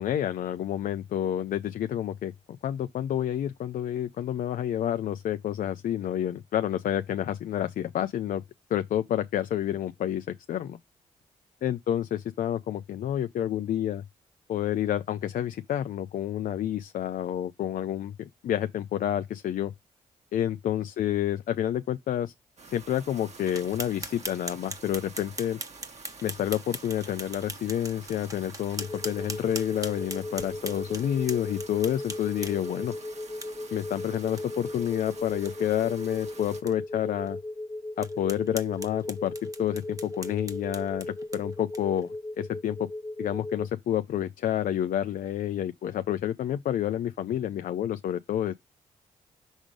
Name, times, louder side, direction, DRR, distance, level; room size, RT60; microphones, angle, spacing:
voice 1, 0.0-8.4 8.7-10.8 11.6-14.0 14.5-19.7 20.3-22.3 22.7-25.6 26.2-32.9 33.7-37.4 38.0-42.9 43.2-48.5, left 11 dB, 65° left, 0.5 m, -29 dB
sound 1, 22.6-36.6, right 4 dB, 50° right, 2.0 m, -48 dB
sound 2, 23.5-32.8 33.4-33.5 33.9-34.0 34.4-34.5 34.8-34.9 35.3-35.5 36.0-36.1 36.7-36.8 37.3-37.4 38.0-42.0, right 2 dB, 20° right, 1.4 m, -41 dB
sound 3, 28.8-43.7, left 2 dB, 20° left, 0.6 m, -37 dB
6.2 x 3.7 x 5.0 m
hypercardioid pair, 45°, 15 cm